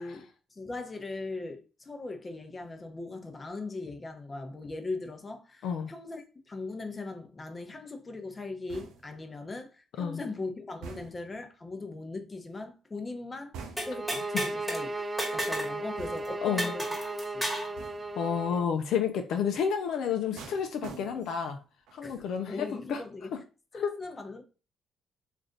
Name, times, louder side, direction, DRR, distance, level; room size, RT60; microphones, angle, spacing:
voice 1, 0.0-13.6 13.9-14.9 15.3-16.9 17.3-17.5 22.0-23.3 23.7-24.4, left 3 dB, 25° left, 0.8 m, -39 dB
sound 1, 8.7-9.3 10.8-11.4 13.5-14.1 16.0-16.5 17.8-18.2 20.4-21.5 21.9-22.2, right 5 dB, 85° right, 0.6 m, -46 dB
sound 2, 13.8-14.8 15.2-15.8 16.0-16.1 16.6-17.7, equal, 5° left, 1.3 m, -32 dB
sound 3, 13.8-18.7, right 2 dB, 25° right, 0.3 m, -36 dB
voice 2, 16.4-16.7 18.2-21.6 21.9-23.0 23.8-23.9, left 7 dB, 75° left, 0.5 m, -30 dB
3.2 x 2.5 x 3.8 m
cardioid pair, 85°, 0 cm